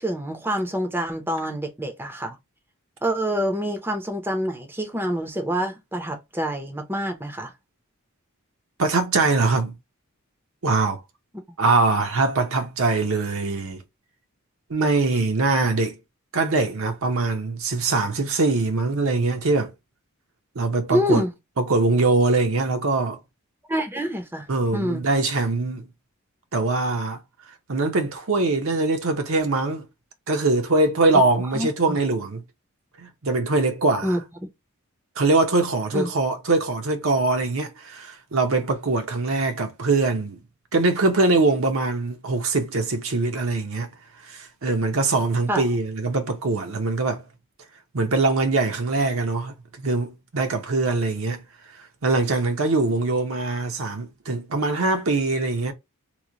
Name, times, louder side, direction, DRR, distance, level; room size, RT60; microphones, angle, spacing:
voice 1, 0.0-2.4 3.0-7.5 11.5-11.6 20.9-21.3 23.7-24.5 24.7-25.1 31.5-31.7 34.0-34.2 35.9-36.1 45.5-45.6, equal, 10° right, 0.6 m, -26 dB
voice 2, 8.8-9.7 10.6-11.0 11.6-13.8 14.7-16.0 16.3-19.7 20.6-21.2 21.6-23.2 24.5-25.8 26.5-27.2 27.7-29.9 30.3-32.4 33.0-34.2 35.2-40.4 40.7-43.9 44.2-47.2 47.9-51.4 52.0-55.7, right 3 dB, 65° right, 0.7 m, -22 dB
3.0 x 2.1 x 3.8 m
head